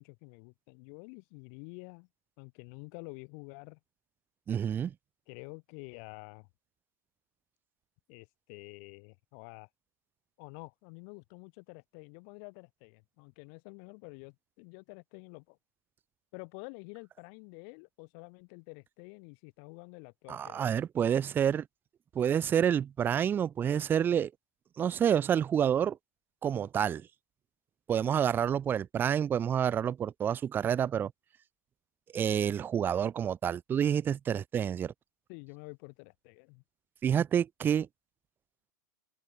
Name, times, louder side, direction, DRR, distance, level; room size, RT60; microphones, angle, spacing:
voice 1, 0.0-2.1 2.4-3.8 5.3-6.5 8.1-9.7 10.4-15.6 16.3-20.7 35.3-36.6, left 40 dB or more, 50° left, 3.9 m, -49 dB
voice 2, 4.5-4.9 20.3-21.7 22.1-24.3 24.8-26.0 26.4-27.1 27.9-31.1 32.1-34.9 37.0-37.9, right 8 dB, 20° right, 0.4 m, -28 dB
open air
hypercardioid pair, 105°, 10 cm